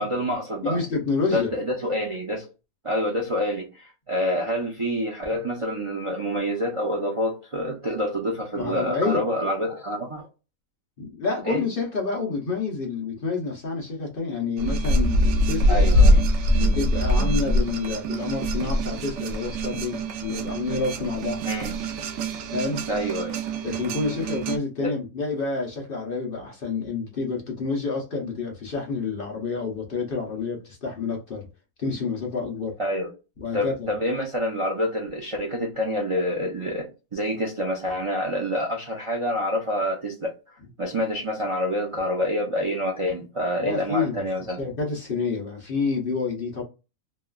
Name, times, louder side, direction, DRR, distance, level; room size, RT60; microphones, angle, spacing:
voice 1, 0.0-0.8 1.3-2.5 2.8-10.3 11.4-11.6 15.7-16.3 21.5-21.8 22.9-23.4 24.8-24.9 32.8-33.1 33.5-40.3 40.8-44.6, equal, 45° right, 0.4 m, -27 dB
voice 2, 0.6-1.5 8.5-9.3 11.0-15.9 16.5-21.5 22.5-22.8 23.6-31.5 31.8-32.8 33.4-33.9 40.6-40.7 43.6-44.2 44.6-46.6, left 4 dB, 50° left, 0.8 m, -28 dB
sound 1, 14.6-24.6, equal, 65° right, 0.7 m, -23 dB
3.1 x 2.3 x 2.3 m
omnidirectional pair, 1.5 m